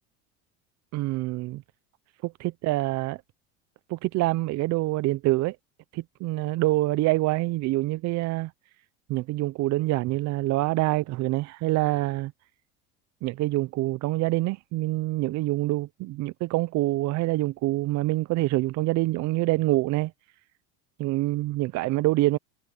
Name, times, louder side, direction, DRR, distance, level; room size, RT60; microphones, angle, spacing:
voice 1, 0.9-1.6 2.2-3.2 3.9-5.6 5.9-8.5 9.1-12.3 13.2-20.1 21.0-22.4, right 18 dB, 50° right, 0.7 m, -26 dB
supercardioid pair, 100°, 36 cm